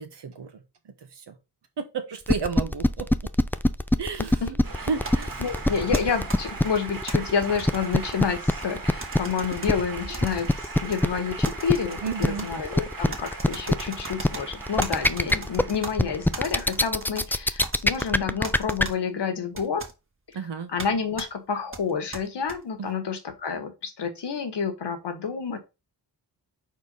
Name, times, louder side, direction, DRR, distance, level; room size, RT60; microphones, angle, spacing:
voice 1, 0.0-1.4 1.8-3.3 4.0-4.4 4.9-5.4 12.0-12.5 20.3-20.7 22.8-22.9, right 5 dB, 85° right, 1.4 m, -33 dB
sound 1, 2.3-18.8, left 1 dB, 5° left, 0.4 m, -22 dB
Male speech man speaking, 4.6-16.8, right 4 dB, 55° right, 2.0 m, -39 dB
sound 2, 5.0-7.1 7.6-8.7 9.0-9.7 10.1-11.0 11.4-12.5 13.1-14.4 14.8-15.9 16.3-17.3 17.6-18.1 18.4-18.9 19.5-19.9 20.8-20.9 21.2-21.3 21.7-22.6, right 3 dB, 30° right, 1.7 m, -38 dB
voice 2, 5.4-19.8 20.7-25.6, left 6 dB, 85° left, 1.5 m, -29 dB
4.7 x 4.6 x 5.5 m
cardioid pair, 75°, 40 cm